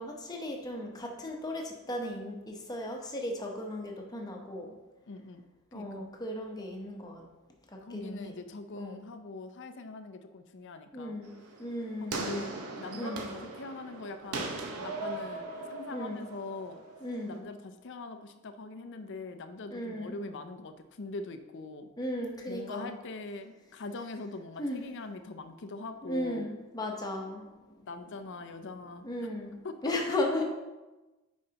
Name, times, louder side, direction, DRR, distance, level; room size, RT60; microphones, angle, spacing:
voice 1, 0.0-4.7 5.7-7.3 7.9-8.3 8.8-9.0 10.9-11.3 11.6-12.4 12.9-13.2 15.9-16.2 17.0-17.4 19.7-20.1 22.0-22.9 24.6-24.8 26.1-27.4 29.0-29.5 29.8-30.4, left 1 dB, 15° left, 1 dB, 0.9 m, -36 dB
voice 2, 5.1-5.4 5.7-6.1 7.8-11.2 12.0-16.8 17.2-21.9 22.5-26.5 27.9-29.1 29.6-30.2, left 3 dB, 55° left, 9 dB, 0.5 m, -42 dB
sound 1, 11.2-17.4, right 3 dB, 75° right, 0.9 m, -39 dB
8.8 x 5.3 x 2.9 m, 1.1 s
head